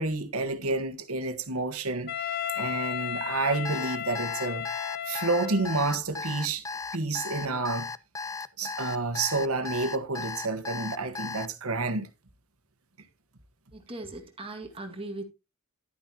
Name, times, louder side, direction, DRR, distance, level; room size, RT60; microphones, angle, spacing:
voice 1, 0.0-2.3 2.6-4.6 5.1-6.6 6.9-7.9 8.6-12.1, right 3 dB, 80° right, 1.4 m, -29 dB
Wind instrument woodwind instrument, 2.1-5.9, left 10 dB, 50° left, 0.7 m, -34 dB
Alarm, 3.6-11.5, left 4 dB, 15° left, 0.4 m, -36 dB
voice 2, 13.7-15.2, right 2 dB, 25° right, 2.0 m, -39 dB
11.5 x 9.8 x 2.9 m
head